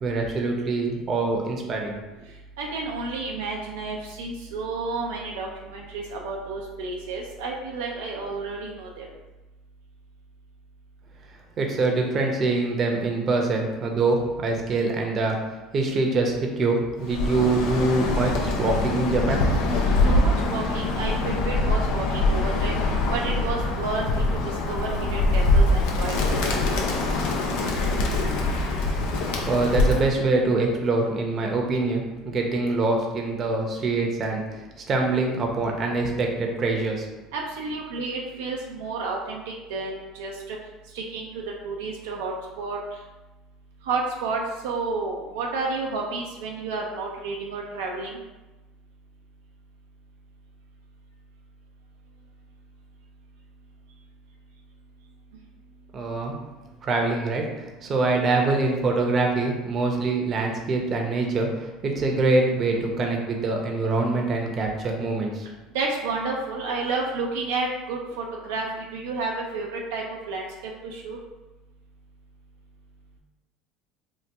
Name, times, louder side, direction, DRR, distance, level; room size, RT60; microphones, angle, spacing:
voice 1, 0.0-2.0 11.6-15.4 15.7-19.5 29.5-37.1 55.9-56.4 56.8-65.5, right 3 dB, 40° right, 1 dB, 0.7 m, -24 dB
voice 2, 2.6-9.1 20.1-22.8 23.1-24.0 24.7-26.1 26.4-26.8 37.3-39.4 39.7-40.6 40.9-42.8 43.8-48.2 65.7-70.5 70.8-71.2, right 3 dB, 85° right, -1 dB, 0.4 m, -31 dB
Bird, 17.0-30.2, left 2 dB, 75° left, 0.5 m, -23 dB
2.9 x 2.3 x 3.3 m, 1.1 s
supercardioid pair, 95°, 0 cm